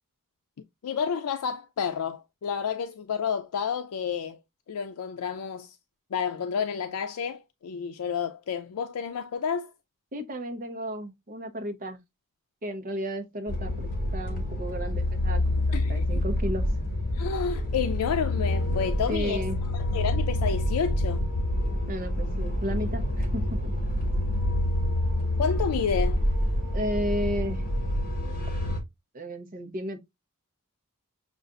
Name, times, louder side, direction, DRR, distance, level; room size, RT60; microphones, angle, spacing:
voice 1, 0.8-4.4 4.7-5.8 6.1-9.7 15.7-16.0 17.1-19.4 19.7-21.3 25.4-26.2, left 6 dB, 85° left, 0.4 m, -30 dB
voice 2, 10.1-12.0 12.6-16.6 19.1-19.6 21.9-23.7 26.7-27.6 29.1-30.0, equal, 40° right, 0.8 m, -33 dB
sound 1, 13.5-28.8, left 1 dB, 40° left, 1.6 m, -27 dB
6.6 x 2.4 x 2.4 m
head